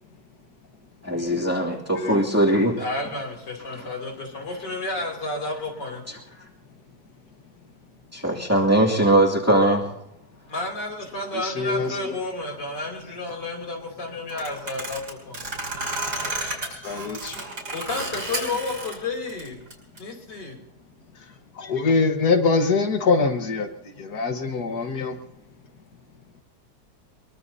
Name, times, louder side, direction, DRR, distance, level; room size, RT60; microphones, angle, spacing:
voice 1, 1.0-2.8 3.7-3.9 6.1-6.2 8.1-9.9, right 1 dB, 10° right, -3 dB, 2.4 m, -20 dB
voice 2, 2.8-6.0 10.5-15.5 17.7-19.6 20.0-20.6, left 2 dB, 85° left, 1 dB, 3.8 m, -31 dB
voice 3, 11.3-12.1 16.8-17.4 21.6-23.7 24.0-25.2, left 4 dB, 65° left, 6 dB, 2.0 m, -23 dB
sound 1, 14.3-19.0 19.3-20.0, right 2 dB, 70° right, 5.0 m, -32 dB
23.0 x 22.5 x 2.8 m, 0.81 s
omnidirectional pair, 1.8 m